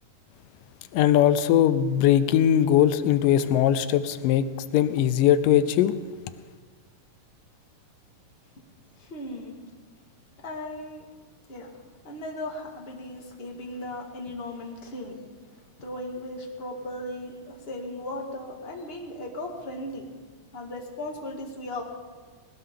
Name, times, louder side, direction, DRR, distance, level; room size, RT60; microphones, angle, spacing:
voice 1, 0.9-5.9, left 10 dB, 85° left, 13 dB, 2.3 m, -20 dB
voice 2, 9.0-9.6 10.4-11.0 11.5-11.7 12.0-15.2 15.8-20.1 20.5-21.8, left 1 dB, 25° left, 0 dB, 1.6 m, -37 dB
19.5 x 19.0 x 3.8 m, 1.4 s
omnidirectional pair, 3.8 m